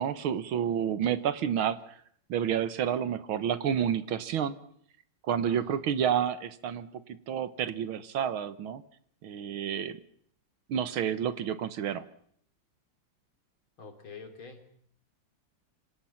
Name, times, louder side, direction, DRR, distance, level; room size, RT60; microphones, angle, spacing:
voice 1, 0.0-1.8 2.3-4.6 5.2-8.8 9.2-10.0 10.7-12.1, right 9 dB, 90° right, 14 dB, 2.0 m, -30 dB
voice 2, 5.5-5.8 13.8-14.6, left 4 dB, 85° left, 5 dB, 4.2 m, -46 dB
27.0 x 25.0 x 5.8 m, 0.64 s
omnidirectional pair, 2.2 m